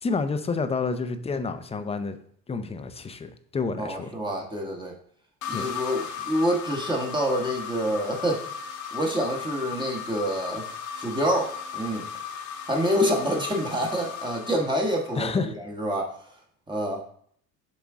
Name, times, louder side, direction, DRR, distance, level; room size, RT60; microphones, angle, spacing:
voice 1, 0.0-2.2 2.5-4.1 5.5-5.7 15.2-15.5, left 4 dB, 15° left, 9 dB, 0.5 m, -29 dB
voice 2, 3.8-4.9 5.5-8.4 8.9-12.1 12.7-16.2 16.7-17.1, equal, 15° right, -1 dB, 1.2 m, -27 dB
sound 1, 5.4-15.4, left 7 dB, 55° left, 1.1 m, -36 dB
7.2 x 3.7 x 3.6 m, 0.62 s
supercardioid pair, 100°, 35 cm